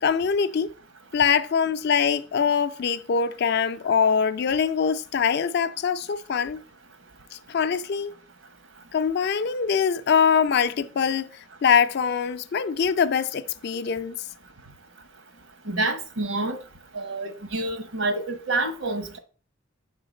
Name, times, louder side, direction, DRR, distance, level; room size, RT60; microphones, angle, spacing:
voice 1, 0.0-0.7 1.1-6.6 7.3-8.1 8.9-14.2, left 6 dB, 55° left, 0.4 m, -23 dB
voice 2, 15.7-16.6 16.9-19.2, right 2 dB, 85° right, 1.1 m, -28 dB
6.3 x 3.9 x 5.0 m
head